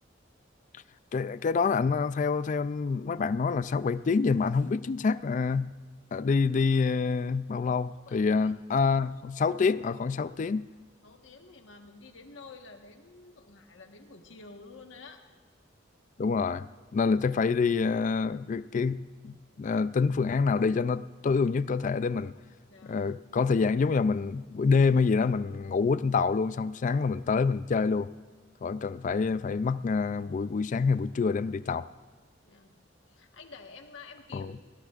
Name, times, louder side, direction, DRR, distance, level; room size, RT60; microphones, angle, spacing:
voice 1, 1.1-5.7 6.1-10.7 16.2-16.7 16.9-22.3 22.8-28.1 28.6-31.9 34.3-34.5, left 4 dB, 40° left, 0.3 m, -27 dB
voice 2, 7.9-8.5 11.0-15.2 22.7-23.0 32.4-32.8 33.1-34.6, left 4 dB, 90° left, 1.4 m, -50 dB
23.5 x 17.0 x 2.5 m
head